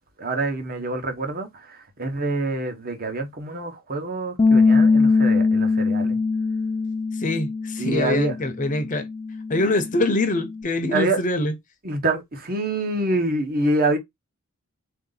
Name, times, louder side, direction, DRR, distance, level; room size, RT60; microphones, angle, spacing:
voice 1, 0.2-6.2 7.8-8.3 10.9-11.2 11.8-14.0, right 2 dB, 40° right, 1.0 m, -26 dB
Bass guitar, 4.4-10.6, left 4 dB, 20° left, 0.3 m, -22 dB
voice 2, 7.1-9.1 9.5-11.5, left 2 dB, 35° left, 0.8 m, -24 dB
3.7 x 2.8 x 3.9 m
head